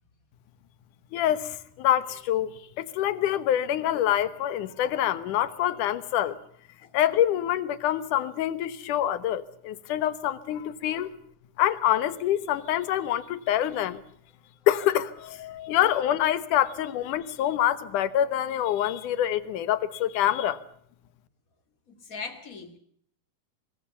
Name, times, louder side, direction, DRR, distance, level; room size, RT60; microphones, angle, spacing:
voice 1, 1.1-2.5 2.8-6.4 6.9-11.1 11.6-14.0 14.7-20.6, left 11 dB, 85° left, 16 dB, 2.7 m, -26 dB
voice 2, 21.9-22.8, left 4 dB, 30° left, 9 dB, 2.5 m, -40 dB
23.5 x 21.0 x 6.9 m, 0.63 s
omnidirectional pair, 3.5 m